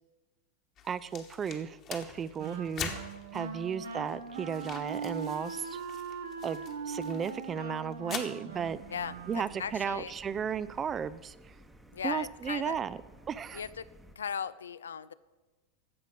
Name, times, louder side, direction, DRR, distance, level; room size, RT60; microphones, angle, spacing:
sound 1, 0.8-8.2, left 7 dB, 35° left, 1.3 m, -45 dB
voice 1, 0.8-2.9 3.3-5.8 6.4-8.8 9.3-11.5 12.0-13.0 13.3-13.6, right 7 dB, 25° right, 17 dB, 0.4 m, -34 dB
Wind instrument woodwind instrument, 2.4-9.7, right 5 dB, 65° right, 1.0 m, -40 dB
sound 2, 8.5-14.2, right 1 dB, 5° right, 1.0 m, -55 dB
voice 2, 8.9-10.1 11.9-12.8 13.5-13.9 14.2-15.1, left 7 dB, 70° left, 16 dB, 0.4 m, -37 dB
14.5 x 5.1 x 7.3 m, 1.2 s
figure-of-eight pair, 85°, 0 cm